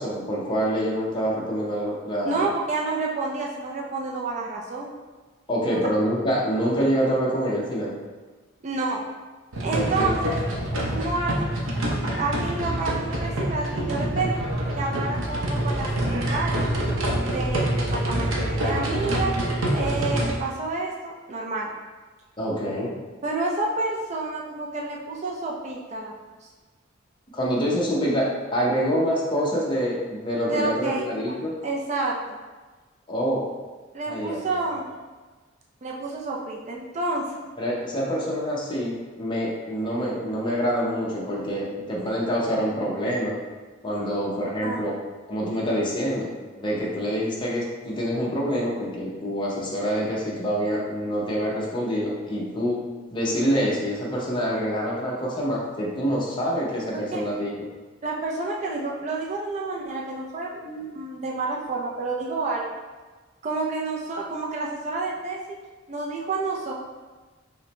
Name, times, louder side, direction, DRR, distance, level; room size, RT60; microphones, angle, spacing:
voice 1, 0.0-2.5 5.5-7.9 9.7-10.1 22.4-22.9 27.3-31.5 33.1-33.4 34.1-34.6 37.6-43.4 43.8-44.9 45.3-46.3 46.5-52.8 53.1-57.5, equal, 25° left, -4 dB, 0.7 m, -26 dB
voice 2, 2.2-4.9 5.6-5.8 8.6-9.0 9.6-10.4 10.9-11.5 11.8-14.4 14.7-16.7 17.2-19.3 19.7-21.7 23.2-26.1 26.4-26.5 30.5-31.0 31.6-32.4 33.9-34.9 35.8-37.4 44.6-44.8 57.1-57.2 58.0-62.7 63.4-65.6 65.9-66.7, right 3 dB, 35° right, -2 dB, 0.4 m, -29 dB
sound 1, 9.5-20.4, right 1 dB, 80° right, 0.7 m, -26 dB
5.5 x 2.2 x 3.0 m, 1.3 s
head